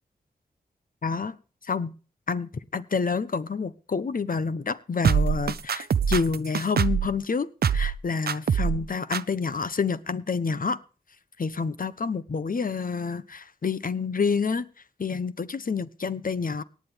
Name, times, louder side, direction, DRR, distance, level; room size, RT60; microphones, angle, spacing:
voice 1, 1.0-1.4 1.6-1.9 2.3-10.8 11.4-14.7 15.0-16.6, left 5 dB, 55° left, 14 dB, 1.1 m, -28 dB
sound 1, 5.0-7.1 7.6-8.0 8.3-8.8 9.1-9.2, right 7 dB, 70° right, 0.6 m, -24 dB
18.0 x 9.5 x 3.5 m, 0.37 s
cardioid pair, 45°, 17 cm